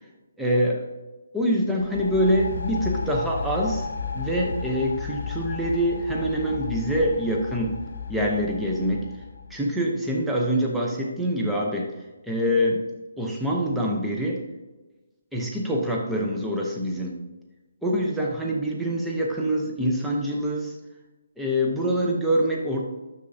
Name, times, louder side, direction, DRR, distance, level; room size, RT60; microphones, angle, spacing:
voice 1, 0.4-0.9 1.3-3.9 4.1-7.8 8.1-9.1 9.5-11.9 12.3-12.8 13.2-14.5 15.3-17.2 17.8-20.7 21.4-22.8, equal, ahead, -3 dB, 0.7 m, -25 dB
sound 1, 1.8-9.6, left 5 dB, 60° left, 1.1 m, -33 dB
9.7 x 6.8 x 2.7 m, 1.1 s
hypercardioid pair, 170°, 0 cm